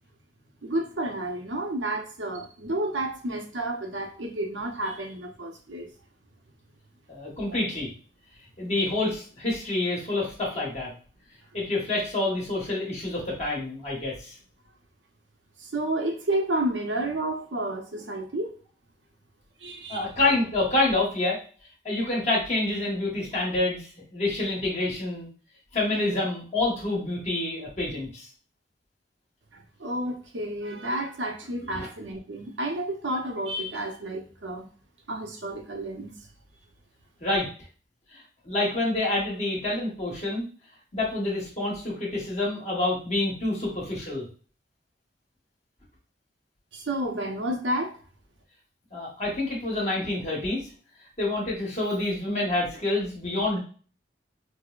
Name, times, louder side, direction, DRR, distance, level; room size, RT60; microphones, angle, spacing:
voice 1, 0.6-5.9 7.5-7.6 15.6-18.5 19.6-20.1 29.5-34.7 35.1-36.1 46.7-48.0, right 1 dB, 85° right, 3 dB, 0.7 m, -31 dB
voice 2, 7.1-7.9 8.6-10.9 11.5-14.3 19.9-21.4 21.8-25.3 25.7-28.3 31.7-31.9 37.2-37.5 38.1-38.2 38.4-40.4 40.9-44.2 48.9-50.7 51.2-53.6, left 2 dB, 40° left, -4 dB, 1.3 m, -27 dB
4.7 x 2.0 x 2.4 m, 0.40 s
head